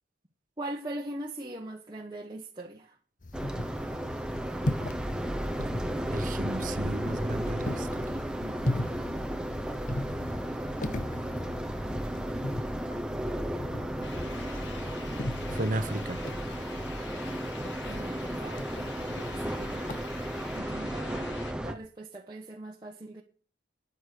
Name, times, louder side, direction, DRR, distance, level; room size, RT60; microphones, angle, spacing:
voice 1, 0.6-3.0 8.4-9.2 17.8-18.6 19.4-19.9 20.5-23.2, right 1 dB, 25° right, 1.1 m, -41 dB
sound 1, 3.2-20.6, left 1 dB, 45° left, 0.9 m, -39 dB
sound 2, 3.3-21.7, right 1 dB, 5° right, 0.8 m, -34 dB
voice 2, 6.1-8.2 15.5-16.2, right 1 dB, 45° right, 0.8 m, -34 dB
sound 3, 14.0-21.5, left 5 dB, 80° left, 1.8 m, -46 dB
10.0 x 8.3 x 8.4 m
head